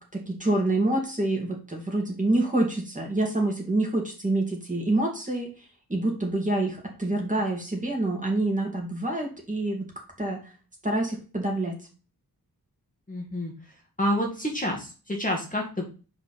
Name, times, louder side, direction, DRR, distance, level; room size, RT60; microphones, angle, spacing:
voice 1, 0.0-9.9 10.2-10.4 10.8-11.8, right 2 dB, 20° right, 0 dB, 2.8 m, -27 dB
voice 2, 13.1-13.5 14.0-15.8, left 1 dB, 20° left, 0 dB, 1.8 m, -28 dB
5.3 x 5.0 x 5.9 m, 0.35 s
wide cardioid pair, 105°, 37 cm